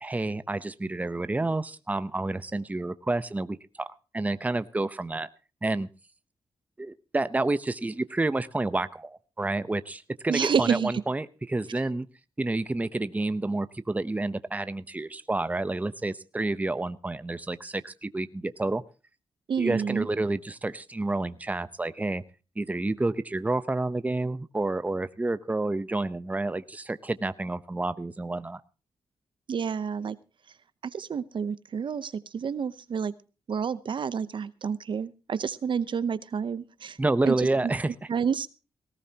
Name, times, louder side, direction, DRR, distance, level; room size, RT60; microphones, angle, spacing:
voice 1, 0.0-3.9 4.1-5.3 5.6-5.9 6.8-12.1 12.4-18.8 19.6-22.2 22.6-28.6 37.0-37.9, right 2 dB, 15° right, 13 dB, 0.8 m, -29 dB
voice 2, 10.3-10.9 19.5-20.1 29.5-30.2 30.8-33.1 33.5-37.0 37.2-37.5 38.1-38.5, right 6 dB, 55° right, 15 dB, 0.8 m, -29 dB
18.5 x 16.5 x 2.9 m, 0.33 s
cardioid pair, 85°, 10 cm